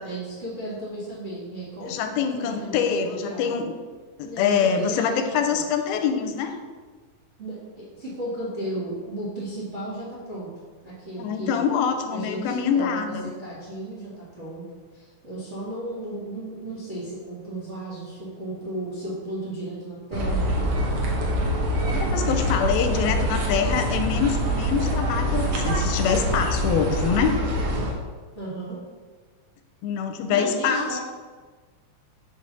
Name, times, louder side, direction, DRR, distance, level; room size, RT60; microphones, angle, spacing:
voice 1, 0.0-3.5 4.2-5.6 7.4-10.5 10.8-11.6 12.1-13.0 13.2-14.6 14.9-20.5 28.3-28.8 30.3-31.0, right 1 dB, 35° right, -7 dB, 1.1 m, -34 dB
voice 2, 1.8-3.7 4.2-6.6 11.2-13.3 21.9-27.4 29.8-31.0, left 7 dB, 90° left, 7 dB, 2.5 m, -25 dB
sound 1, 20.1-27.9, equal, 75° right, 1.3 m, -25 dB
5.5 x 5.3 x 6.0 m, 1.4 s
omnidirectional pair, 4.3 m